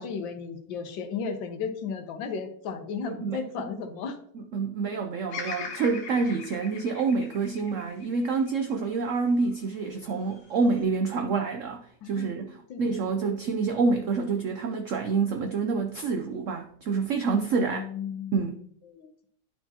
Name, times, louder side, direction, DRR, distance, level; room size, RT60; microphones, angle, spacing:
voice 1, 0.0-4.2 12.0-13.4 17.6-19.1, left 6 dB, 85° left, 1.6 m, -35 dB
voice 2, 3.1-3.7 4.3-17.8 18.3-18.6, right 4 dB, 75° right, 0.7 m, -27 dB
Bird vocalization bird call bird song, 5.3-9.5 10.1-10.8, left 5 dB, 70° left, 1.6 m, -41 dB
11.0 x 4.5 x 2.8 m
omnidirectional pair, 2.0 m